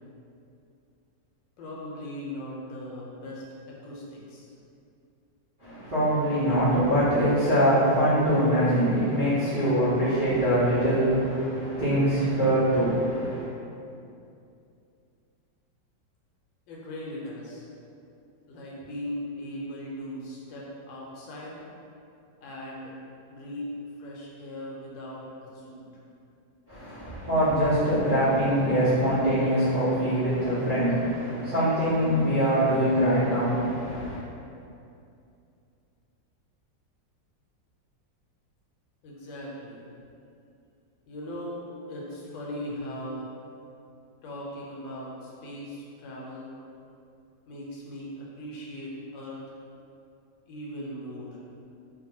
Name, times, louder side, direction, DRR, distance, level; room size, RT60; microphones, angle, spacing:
voice 1, 1.6-4.5 16.7-17.7 18.5-21.6 22.4-22.9 23.3-25.8 39.0-39.9 41.1-41.6 41.9-43.3 44.2-46.6 47.5-49.4 50.5-51.4, left 1 dB, 80° left, -4 dB, 1.3 m, -39 dB
voice 2, 5.6-13.4 26.7-34.2, equal, 60° right, -15 dB, 0.5 m, -23 dB
2.9 x 2.5 x 2.7 m, 2.6 s
omnidirectional pair, 2.0 m